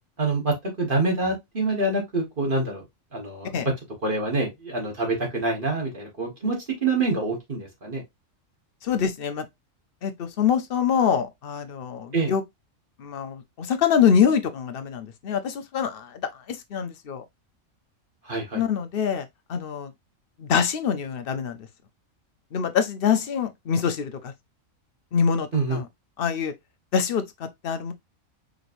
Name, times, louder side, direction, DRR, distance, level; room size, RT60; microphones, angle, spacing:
voice 1, 0.2-2.8 3.1-3.5 4.0-8.0 12.1-12.3 18.2-18.6 25.5-25.8, right 3 dB, 40° right, 1.6 m, -26 dB
voice 2, 8.8-9.5 10.0-12.4 13.0-17.2 18.5-19.9 20.4-21.7 22.5-24.3 25.1-25.9 26.2-26.5 26.9-27.9, left 7 dB, 55° left, 0.8 m, -25 dB
5.0 x 3.2 x 2.5 m
omnidirectional pair, 1.4 m